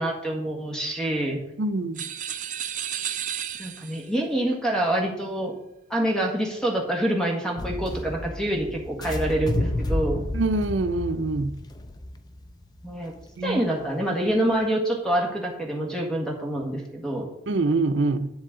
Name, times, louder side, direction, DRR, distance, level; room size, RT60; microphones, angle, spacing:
voice 1, 0.0-1.4 3.6-5.5 5.9-10.2 12.8-13.1 13.4-17.3, right 1 dB, 5° left, 1.6 m, -26 dB
voice 2, 1.6-2.0 10.3-11.6 13.4-13.6 17.5-18.3, right 2 dB, 85° right, 0.6 m, -25 dB
sound 1, 1.9-4.1, right 10 dB, 45° right, 0.5 m, -32 dB
sound 2, 7.6-13.7, left 1 dB, 20° left, 0.4 m, -31 dB
10.5 x 6.9 x 3.8 m
head